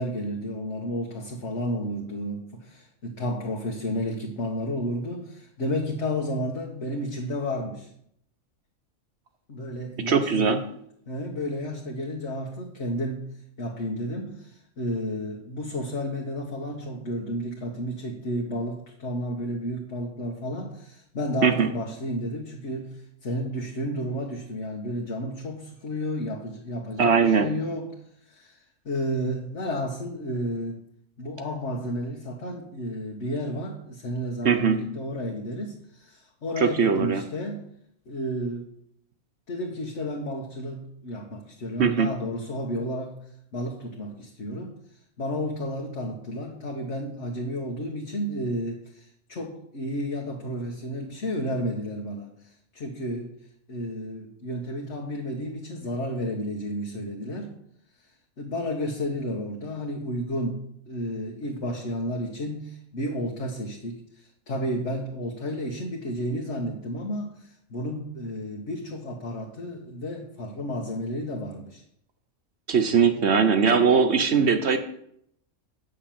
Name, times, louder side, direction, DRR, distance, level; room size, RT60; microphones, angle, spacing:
voice 1, 0.0-7.9 9.5-10.6 11.1-13.3 13.6-27.9 28.2-30.8 31.2-37.7 38.1-38.7 39.5-43.2 43.5-44.8 45.2-53.3 53.7-57.5 58.0-58.1 58.4-71.8 73.1-73.2, equal, 55° left, 0 dB, 1.6 m, -32 dB
voice 2, 10.1-10.6 21.4-21.7 27.0-27.5 34.4-34.8 36.6-37.2 41.8-42.1 72.7-74.8, right 6 dB, 55° right, 8 dB, 1.1 m, -20 dB
8.8 x 6.5 x 7.5 m, 0.71 s
omnidirectional pair, 1.4 m